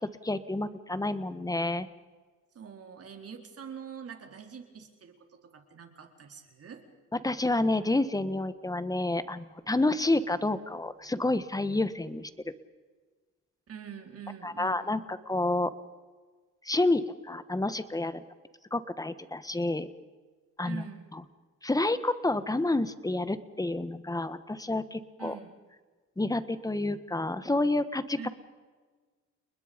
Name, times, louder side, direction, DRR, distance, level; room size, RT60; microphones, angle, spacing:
voice 1, 0.2-1.9 7.2-12.3 14.4-15.7 16.6-18.2 18.7-19.9 20.6-20.8 21.1-21.2 21.6-25.3 26.2-28.3, left 2 dB, 10° left, 13 dB, 1.5 m, -29 dB
voice 2, 2.5-6.8 13.7-15.1 20.6-21.0 25.2-25.6 28.2-28.3, right 7 dB, 50° right, 4 dB, 4.2 m, -45 dB
30.0 x 20.5 x 5.3 m, 1.4 s
cardioid pair, 90°, 30 cm